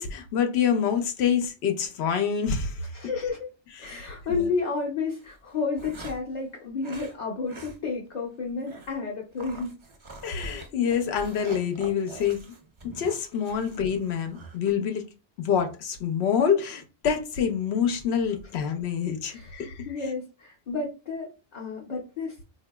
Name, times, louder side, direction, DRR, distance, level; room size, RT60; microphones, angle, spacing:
voice 1, 0.0-2.8 3.8-4.5 10.2-12.5 13.0-15.0 15.4-19.9, left 7 dB, 90° left, 0.9 m, -26 dB
voice 2, 2.9-3.5 3.8-9.7 19.3-19.6 19.9-22.4, left 4 dB, 45° left, 0.7 m, -31 dB
sound 1, 4.2-4.5 5.2-6.3 6.8-7.2 7.5-7.8 8.1-8.2 8.7-9.0 9.4-14.7, right 2 dB, 40° right, 0.5 m, -44 dB
3.8 x 2.6 x 2.2 m
omnidirectional pair, 1.1 m